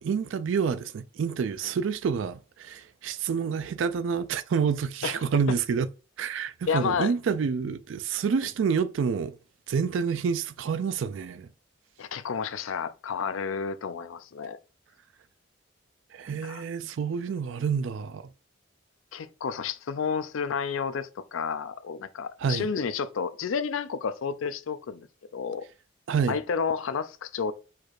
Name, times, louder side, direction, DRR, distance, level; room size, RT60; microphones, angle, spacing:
voice 1, 0.0-5.9 6.2-9.4 9.7-11.5 16.1-18.3 22.4-22.7 26.1-26.4, right 6 dB, 75° right, 0.3 m, -28 dB
voice 2, 6.7-7.1 12.0-14.6 16.4-16.6 19.1-25.1 25.3-25.7 26.3-27.5, left 6 dB, 90° left, 0.4 m, -31 dB
4.4 x 2.4 x 4.6 m
head